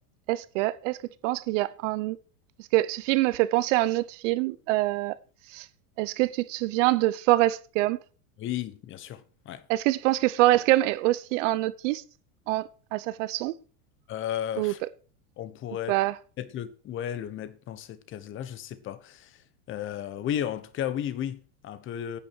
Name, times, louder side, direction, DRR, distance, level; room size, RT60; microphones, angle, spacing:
voice 1, 0.3-1.0 1.2-2.2 2.7-5.2 5.5-5.6 6.0-8.0 9.7-12.0 12.5-13.5 14.6-14.7 15.9-16.1, right 17 dB, 55° right, 0.9 m, -25 dB
voice 2, 8.4-9.6 14.1-14.8 15.4-15.9 16.4-19.4 19.7-22.2, left 10 dB, 25° left, 1.1 m, -34 dB
10.0 x 9.2 x 6.5 m
supercardioid pair, 150°, 45 cm